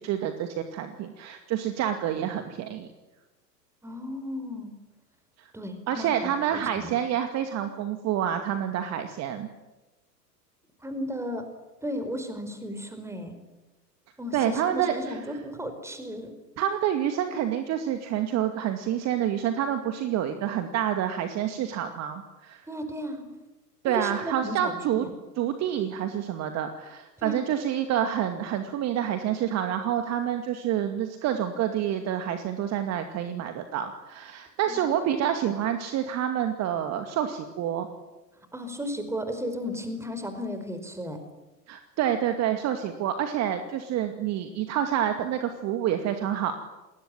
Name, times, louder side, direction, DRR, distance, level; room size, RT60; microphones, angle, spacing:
voice 1, 0.0-2.9 5.4-5.5 5.9-9.5 14.3-15.2 16.6-22.6 23.8-25.1 25.4-37.9 41.7-46.5, right 10 dB, 30° right, 7 dB, 2.4 m, -28 dB
voice 2, 3.8-4.7 5.5-6.1 6.5-6.9 10.8-11.5 11.8-13.3 14.2-16.3 22.7-23.2 23.8-25.1 27.2-27.4 34.7-34.9 38.5-41.2, equal, 5° right, 8 dB, 4.9 m, -34 dB
29.0 x 21.0 x 9.2 m, 1.1 s
figure-of-eight pair, 95°, 50 cm